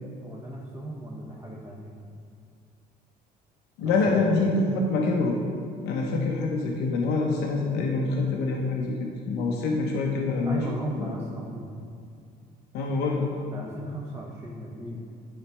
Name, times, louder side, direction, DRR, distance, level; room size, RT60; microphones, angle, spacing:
voice 1, 0.2-2.0 3.8-4.2 10.5-11.8 13.5-15.0, right 1 dB, 15° right, -3 dB, 0.8 m, -36 dB
voice 2, 3.8-5.4 5.8-10.6 11.0-11.1 12.7-13.2, left 3 dB, 90° left, 0 dB, 0.7 m, -25 dB
9.7 x 4.0 x 3.3 m, 2.3 s
cardioid pair, 110°, 17 cm